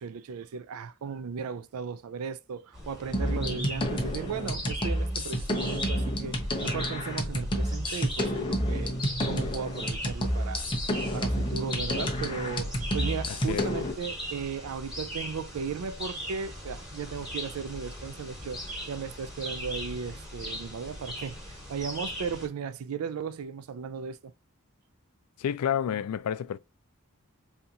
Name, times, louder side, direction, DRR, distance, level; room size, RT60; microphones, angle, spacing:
voice 1, 0.0-9.0 9.3-10.7 11.1-18.6 18.9-24.3, right 6 dB, 75° right, 0.4 m, -36 dB
sound 1, 2.7-22.5, equal, ahead, 1.7 m, -40 dB
sound 2, 3.1-13.9, equal, 20° left, 0.8 m, -30 dB
voice 2, 25.4-26.6, left 9 dB, 90° left, 0.3 m, -29 dB
4.1 x 2.8 x 2.5 m
head